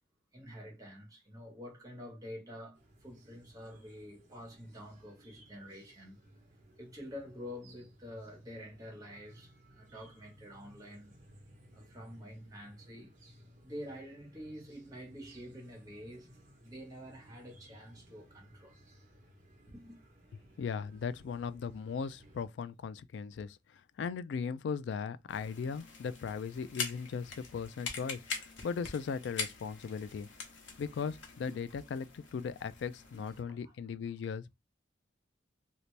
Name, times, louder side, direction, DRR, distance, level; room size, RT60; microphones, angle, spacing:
voice 1, 0.3-6.2 6.8-11.2 11.7-13.1 13.6-16.3 16.6-18.8 19.7-20.0 33.4-33.7, equal, 20° right, 1.3 m, -48 dB
sound 1, 2.7-22.5, right 1 dB, 40° right, 1.0 m, -60 dB
voice 2, 20.6-30.3 30.8-34.5, left 6 dB, 65° left, 0.3 m, -38 dB
sound 2, 25.3-33.4, left 4 dB, 85° left, 1.0 m, -44 dB
2.9 x 2.7 x 3.2 m
head